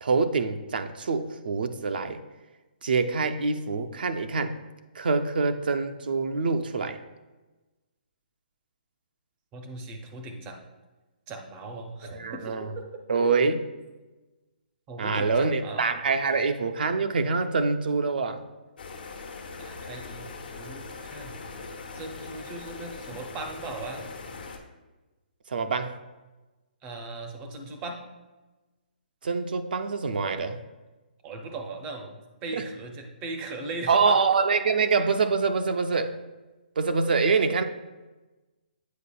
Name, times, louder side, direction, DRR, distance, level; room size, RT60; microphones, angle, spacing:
voice 1, 0.0-2.2 2.8-4.5 5.0-7.0 12.1-12.7 13.1-13.6 15.0-18.4 25.5-25.9 29.2-30.6 32.5-32.6 33.9-36.1 36.8-37.6, right 4 dB, 65° right, 7 dB, 0.5 m, -25 dB
voice 2, 9.5-10.6 11.3-13.0 14.9-15.8 19.6-21.4 21.9-24.0 26.8-28.0 31.2-34.2, right 2 dB, 15° right, 4 dB, 0.5 m, -38 dB
sound 1, 18.8-24.6, left 4 dB, 65° left, 0.8 m, -41 dB
8.3 x 5.0 x 2.3 m, 1.2 s
hypercardioid pair, 170°, 5 cm